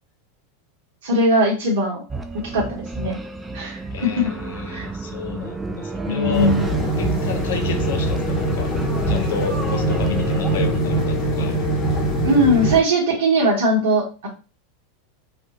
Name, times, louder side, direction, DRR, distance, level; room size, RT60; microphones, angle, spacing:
voice 1, 1.0-2.0 2.5-2.7 3.0-3.2 3.5-4.3 4.7-4.9 6.0-6.6 12.2-14.3, right 1 dB, 65° right, -2 dB, 1.2 m, -19 dB
sound 1, 2.1-10.8, right 3 dB, 10° right, 0.3 m, -31 dB
voice 2, 3.9-6.6 7.0-8.7 9.1-11.6, left 5 dB, 65° left, 5 dB, 0.6 m, -31 dB
sound 2, 6.3-12.8, right 1 dB, 30° left, 0.9 m, -22 dB
2.6 x 2.2 x 2.9 m, 0.34 s
figure-of-eight pair, 90°, 0 cm